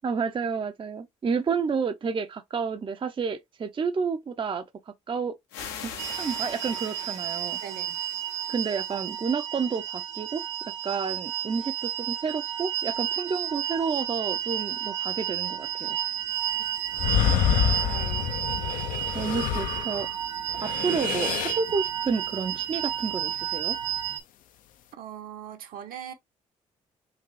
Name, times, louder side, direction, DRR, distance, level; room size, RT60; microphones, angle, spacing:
voice 1, 0.0-4.6 5.1-5.4 5.8-7.6 8.5-10.4 10.8-16.0 19.1-20.1 20.6-23.8, right 5 dB, 30° right, 0.5 m, -30 dB
sound 1, 5.5-9.2, left 7 dB, 75° left, 0.8 m, -42 dB
sound 2, 6.0-24.2, right 11 dB, 80° right, 0.5 m, -32 dB
voice 2, 7.6-8.0 17.8-18.3 24.9-26.1, right 9 dB, 65° right, 0.9 m, -41 dB
sound 3, 16.9-20.1 20.5-21.7, left 10 dB, 60° left, 0.4 m, -27 dB
3.9 x 2.6 x 3.0 m
hypercardioid pair, 45°, 16 cm